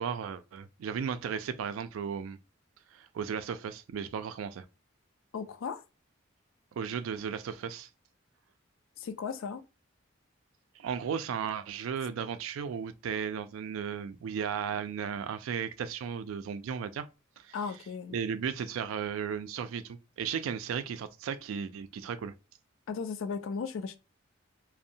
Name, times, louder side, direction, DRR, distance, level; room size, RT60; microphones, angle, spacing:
voice 1, 0.0-2.4 2.9-4.7 6.8-7.9 10.8-17.1 17.4-17.6 18.1-22.3, right 7 dB, 80° right, 0.3 m, -35 dB
voice 2, 5.3-5.8 9.0-9.6 17.5-18.2 22.9-24.0, left 5 dB, 75° left, 0.3 m, -36 dB
2.6 x 2.0 x 2.6 m
head